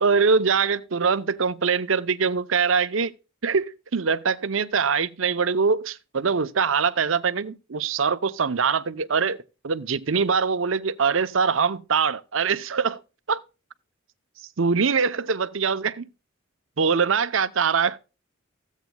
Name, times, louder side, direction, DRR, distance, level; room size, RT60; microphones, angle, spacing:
voice 1, 0.0-3.1 3.4-9.4 9.6-13.0 13.3-13.4 14.6-16.1 16.8-18.0, right 5 dB, 70° right, 0.7 m, -23 dB
15.5 x 8.1 x 2.2 m
head